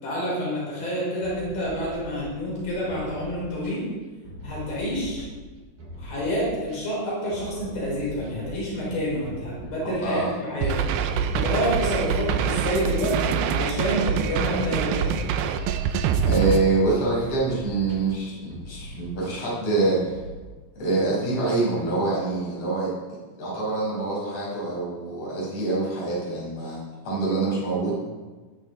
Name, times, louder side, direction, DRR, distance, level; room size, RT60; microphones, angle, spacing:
voice 1, 0.0-3.8 4.4-5.2 6.0-10.2 10.5-10.7 11.3-15.2, equal, 70° left, -6 dB, 6.7 m, -28 dB
sound 1, 1.2-20.4, equal, 60° right, 4.6 m, -42 dB
sound 2, 10.6-16.6, right 7 dB, 80° right, 2.5 m, -25 dB
voice 2, 16.2-20.1 20.8-22.9 23.4-28.0, right 3 dB, 40° left, -7 dB, 6.0 m, -25 dB
20.0 x 10.0 x 4.0 m, 1.3 s
omnidirectional pair, 4.6 m